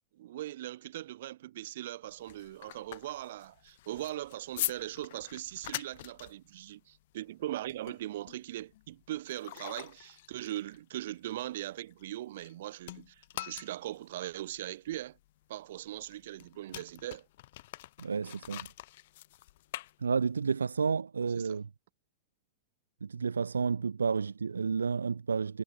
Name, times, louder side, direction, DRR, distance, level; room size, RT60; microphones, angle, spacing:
voice 1, 0.1-15.2 15.5-17.3 21.3-21.6, right 14 dB, 55° right, 7.5 m, -40 dB
sound 1, 2.0-12.5 12.8-20.5, left 16 dB, 55° left, 1.7 m, -44 dB
voice 2, 18.0-18.7 20.0-21.7 23.0-25.6, right 5 dB, 75° right, 2.1 m, -31 dB
figure-of-eight pair, 90°, 0 cm